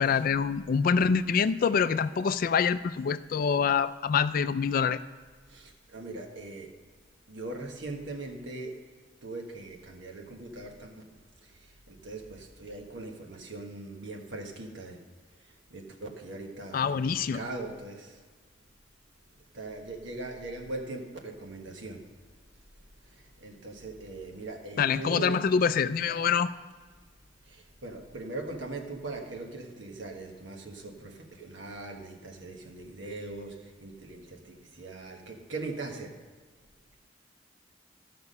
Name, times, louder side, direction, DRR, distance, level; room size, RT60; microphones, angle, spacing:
voice 1, 0.0-5.0 16.7-17.4 24.8-26.5, left 6 dB, 45° left, 14 dB, 0.3 m, -25 dB
voice 2, 5.5-6.7 7.3-8.8 9.2-11.0 11.4-15.0 15.4-18.2 19.5-22.1 23.1-25.4 27.4-36.2, right 2 dB, 70° right, 2 dB, 1.4 m, -41 dB
14.0 x 5.9 x 5.4 m, 1.5 s
head